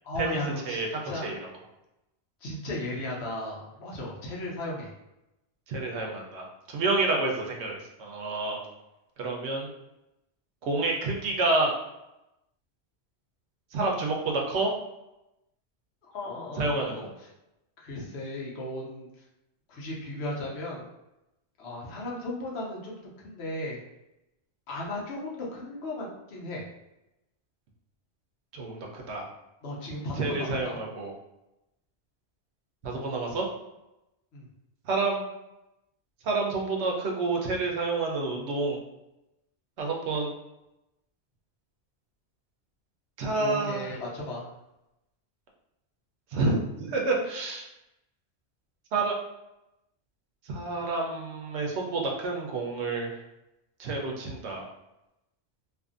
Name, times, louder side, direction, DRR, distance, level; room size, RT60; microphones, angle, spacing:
voice 1, 0.0-1.3 2.4-4.9 16.0-17.1 17.8-19.1 19.7-20.9 21.6-23.8 24.7-26.7 29.6-30.8 34.3-34.5 43.4-44.5, left 1 dB, 75° left, -3 dB, 1.0 m, -35 dB
voice 2, 5.7-8.6 9.2-9.7 10.6-11.7 13.7-14.7 16.6-17.1 28.5-29.3 30.2-31.1 32.8-33.5 34.8-35.2 36.2-38.8 39.8-40.3 43.2-43.8 46.3-47.6 48.9-49.2 50.5-53.2 53.8-54.7, right 3 dB, 85° right, 0 dB, 0.9 m, -29 dB
2.6 x 2.5 x 2.5 m, 0.91 s
omnidirectional pair, 1.1 m